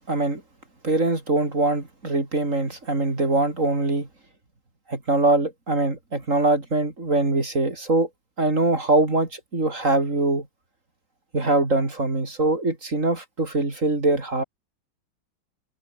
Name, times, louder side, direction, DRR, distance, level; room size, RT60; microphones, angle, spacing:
voice 1, 0.1-0.4 0.8-4.1 4.9-8.1 8.4-10.5 11.3-14.4, right 2 dB, 40° right, 4.3 m, -23 dB
omnidirectional pair, 2.1 m